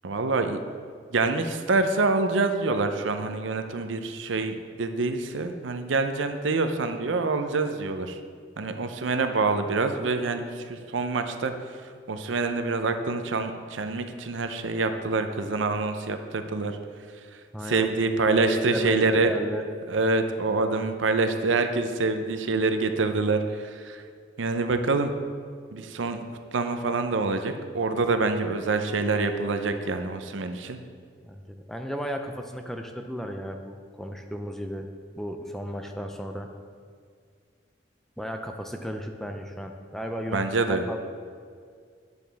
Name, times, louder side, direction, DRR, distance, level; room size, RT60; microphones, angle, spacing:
voice 1, 0.0-0.6 1.1-8.2 8.6-11.5 12.1-16.8 17.3-19.3 19.9-24.0 24.4-25.1 25.7-26.2 26.5-30.8 40.3-40.8, right 3 dB, 85° right, 8 dB, 0.6 m, -26 dB
voice 2, 17.5-17.9 18.4-19.6 31.2-34.9 35.2-36.5 38.2-41.0, equal, ahead, 4 dB, 0.4 m, -34 dB
9.5 x 7.2 x 3.4 m, 2.1 s
head